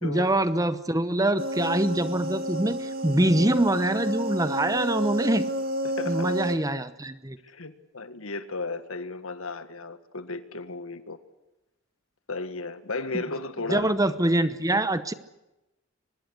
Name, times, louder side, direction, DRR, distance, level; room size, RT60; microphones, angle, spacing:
voice 1, 0.0-5.5 6.1-7.4 13.7-15.1, right 1 dB, 15° right, 0.9 m, -24 dB
sound 1, 1.4-6.6, right 1 dB, 45° right, 1.8 m, -31 dB
voice 2, 5.8-6.3 7.4-11.2 12.3-13.9, left 3 dB, 75° left, 1.8 m, -34 dB
24.0 x 20.5 x 8.2 m
head